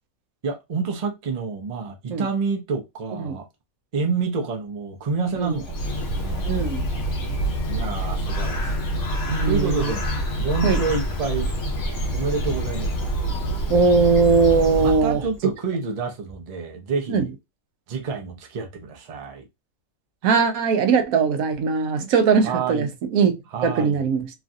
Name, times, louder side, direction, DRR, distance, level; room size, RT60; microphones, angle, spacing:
voice 1, 0.4-3.5 3.9-6.5 7.7-8.8 9.4-10.1 10.4-11.5 12.1-13.1 14.8-17.3 17.9-19.4 22.4-22.9 23.5-24.0, right 4 dB, 40° right, 0.5 m, -28 dB
Bird, 5.3-15.4, right 1 dB, 60° left, 1.0 m, -26 dB
voice 2, 6.5-6.8 9.3-9.9 10.6-10.8 13.7-15.2 17.1-17.3 20.2-23.3 23.6-24.3, right 5 dB, 80° right, 1.0 m, -20 dB
3.1 x 2.4 x 2.5 m
omnidirectional pair, 1.5 m